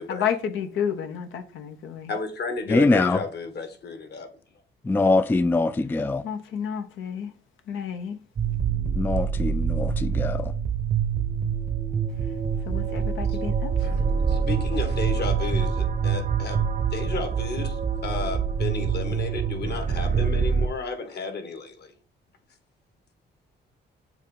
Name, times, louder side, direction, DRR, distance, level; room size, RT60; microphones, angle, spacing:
voice 1, 0.1-2.1 6.2-7.3 7.7-8.2 12.7-14.1, left 8 dB, 80° left, 0.9 m, -31 dB
voice 2, 2.1-4.3 13.8-14.0 14.3-17.8 18.0-21.9, left 4 dB, 55° left, 1.6 m, -33 dB
voice 3, 2.7-3.2 4.9-6.2 8.9-10.5, left 3 dB, 10° left, 0.3 m, -23 dB
sound 1, 8.4-20.7, right 6 dB, 45° right, 0.8 m, -25 dB
7.2 x 2.6 x 5.5 m
cardioid pair, 90°, 20 cm